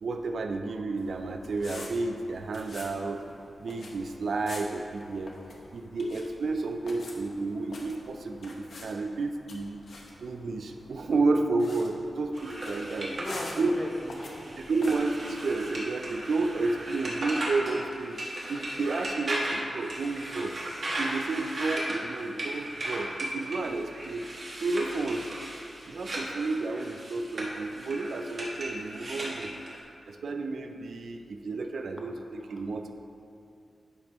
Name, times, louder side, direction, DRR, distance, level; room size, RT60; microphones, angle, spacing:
voice 1, 0.0-3.2 3.6-5.3 5.7-9.8 10.2-13.1 13.6-13.7 14.7-18.2 18.5-20.5 21.0-24.3 24.6-25.3 25.9-29.5 30.1-32.9, right 3 dB, 70° right, 5 dB, 0.4 m, -31 dB
sound 1, 1.0-14.9, left 2 dB, 65° left, 0.9 m, -47 dB
sound 2, 12.3-29.8, right 1 dB, 50° right, 1.3 m, -36 dB
voice 2, 12.9-14.5 32.4-32.6, left 1 dB, 20° left, 0 dB, 0.9 m, -39 dB
10.5 x 5.2 x 3.0 m, 2.6 s
wide cardioid pair, 115°, 0 cm